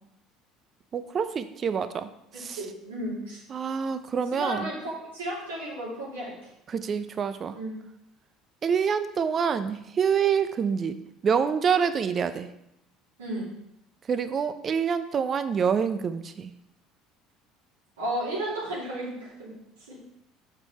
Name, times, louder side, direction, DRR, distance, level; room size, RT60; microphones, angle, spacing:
voice 1, 0.9-2.1 2.4-2.6 3.5-4.7 6.7-7.5 8.6-11.0 11.2-12.5 14.1-16.5, right 7 dB, 40° right, 11 dB, 0.6 m, -26 dB
voice 2, 2.5-3.4 4.4-6.5 7.5-7.8 13.2-13.5 18.0-19.5 19.9-20.0, right 1 dB, 80° right, -6 dB, 2.8 m, -33 dB
7.7 x 4.7 x 4.3 m, 0.80 s
hypercardioid pair, 65°, 0 cm